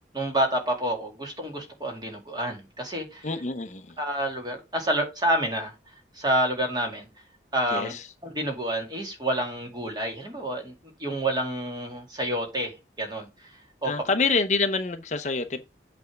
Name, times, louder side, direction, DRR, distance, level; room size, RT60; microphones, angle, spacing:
voice 1, 0.1-3.3 4.0-5.7 6.1-7.1 7.5-7.9 8.2-10.7 11.0-13.5 13.8-13.9, right 1 dB, 25° right, 2.3 m, -28 dB
voice 2, 3.2-4.0 7.7-8.1 13.8-15.6, left 4 dB, 40° left, 0.7 m, -27 dB
8.2 x 3.4 x 6.4 m
head